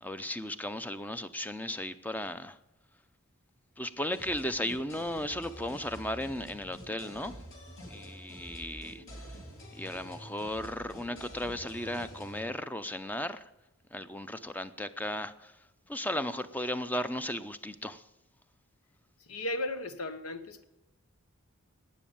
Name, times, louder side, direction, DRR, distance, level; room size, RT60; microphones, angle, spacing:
voice 1, 0.0-2.6 3.8-7.4 7.9-9.0 9.7-13.4 13.9-15.5 15.9-18.0, left 1 dB, 10° left, 0.5 m, -35 dB
sound 1, 4.1-12.5, equal, 65° left, 3.5 m, -47 dB
voice 2, 19.2-20.6, left 1 dB, 85° left, 1.1 m, -35 dB
12.5 x 9.3 x 7.2 m
head